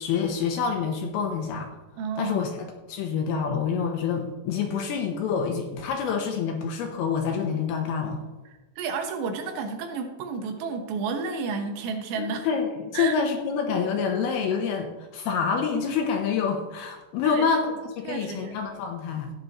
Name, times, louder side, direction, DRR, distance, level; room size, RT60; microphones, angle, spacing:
voice 1, 0.0-1.7 2.2-2.5 2.9-8.2 12.2-19.3, left 6 dB, 75° left, 3 dB, 2.5 m, -27 dB
voice 2, 2.0-2.4 8.8-12.5 12.9-13.2 17.2-17.5 18.0-18.6, right 5 dB, 80° right, 5 dB, 3.2 m, -31 dB
14.5 x 9.8 x 2.9 m, 1.2 s
omnidirectional pair, 5.1 m